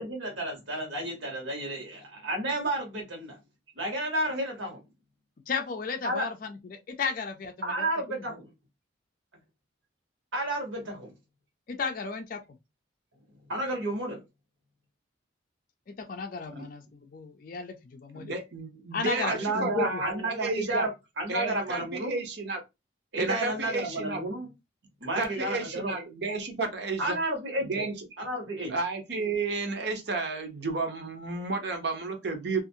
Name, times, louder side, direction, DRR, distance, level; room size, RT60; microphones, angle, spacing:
voice 1, 0.0-3.4 3.8-4.8 6.0-6.3 7.6-8.5 10.3-11.1 13.5-14.2 19.2-20.9 21.2-22.2 23.1-24.5 25.0-25.9 27.0-27.9 28.2-28.7, right 1 dB, 85° right, 1.1 m, -31 dB
voice 2, 5.5-6.3 6.7-7.8 11.7-12.4 15.9-18.3 18.9-20.0, left 5 dB, 45° left, 0.4 m, -34 dB
voice 3, 18.1-20.9 21.3-22.6 23.1-24.2 25.2-27.2 27.6-27.9 28.7-32.6, right 3 dB, 60° right, 0.7 m, -32 dB
2.5 x 2.4 x 2.6 m
head